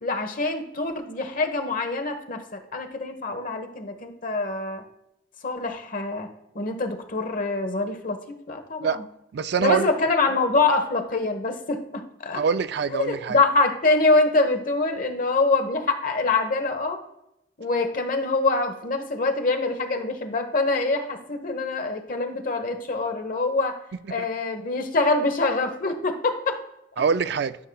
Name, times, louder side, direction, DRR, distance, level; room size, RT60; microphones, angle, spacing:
voice 1, 0.0-4.8 5.4-6.3 6.5-8.2 8.5-9.0 9.6-12.4 12.9-17.0 17.6-23.8 24.1-26.6, left 3 dB, 50° left, 1.1 m, -25 dB
voice 2, 9.3-9.9 12.3-13.4 24.2-24.3 27.0-27.6, right 6 dB, 65° right, 0.4 m, -24 dB
12.5 x 5.6 x 2.3 m
head